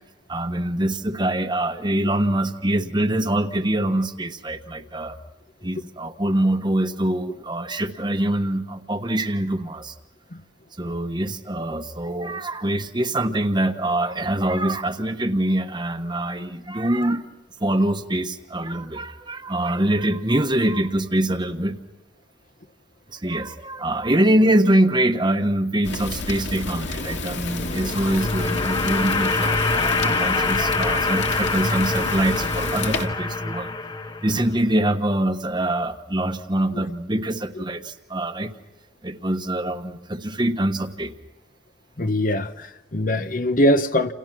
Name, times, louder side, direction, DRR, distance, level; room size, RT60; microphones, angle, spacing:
voice 1, 0.3-5.2 5.6-9.9 10.8-17.2 17.6-21.8 23.1-33.7 34.2-38.5 39.0-41.1, right 1 dB, 25° right, 1.2 m, -24 dB
Fire, 25.8-33.1, left 3 dB, 70° left, 2.2 m, -30 dB
sound 1, 27.4-34.6, left 3 dB, 20° left, 0.9 m, -25 dB
voice 2, 42.0-44.1, left 1 dB, 45° left, 0.9 m, -22 dB
29.5 x 28.0 x 6.1 m
head